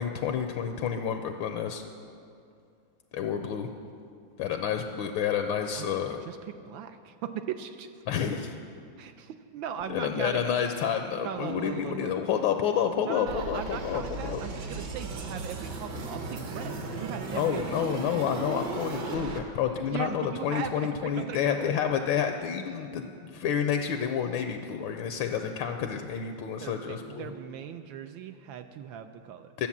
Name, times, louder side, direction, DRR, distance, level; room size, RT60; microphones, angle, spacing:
voice 1, 0.0-1.8 3.1-3.7 4.4-6.2 8.1-8.6 9.9-14.4 17.3-27.3 29.6-29.7, left 8 dB, 75° left, 6 dB, 1.3 m, -29 dB
voice 2, 6.3-8.3 9.0-10.6 11.2-12.3 13.1-18.0 19.9-21.8 26.6-29.5, right 8 dB, 75° right, 8 dB, 1.2 m, -39 dB
sound 1, 13.3-19.4, right 3 dB, 60° right, 1.6 m, -36 dB
12.0 x 7.6 x 7.2 m, 2.4 s
omnidirectional pair, 2.3 m